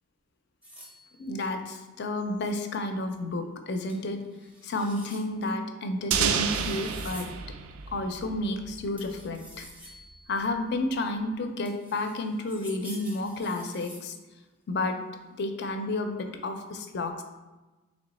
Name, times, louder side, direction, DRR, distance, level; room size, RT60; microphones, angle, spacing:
sound 1, 0.6-1.3 3.9-4.0 4.3-5.2 6.3-7.3 9.0-10.5 11.6-14.1, equal, 5° right, 0.5 m, -48 dB
voice 1, 1.2-4.2 4.6-7.3 7.9-9.7 10.3-14.1 14.7-15.0 15.4-17.2, left 2 dB, 50° left, 6 dB, 0.4 m, -31 dB
sound 2, 6.1-8.9, right 7 dB, 80° right, 0.3 m, -30 dB
3.3 x 3.0 x 4.0 m, 1.2 s
head